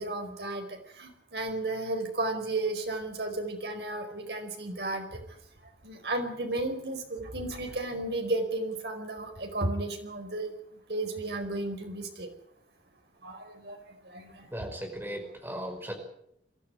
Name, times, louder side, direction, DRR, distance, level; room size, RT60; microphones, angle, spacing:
voice 1, 0.0-5.2 5.8-10.5 10.9-12.3 13.2-13.8 14.0-14.5, right 2 dB, 70° right, 5 dB, 4.8 m, -33 dB
voice 2, 14.5-15.9, equal, 10° right, 3 dB, 5.1 m, -37 dB
23.0 x 14.0 x 9.9 m, 0.74 s
head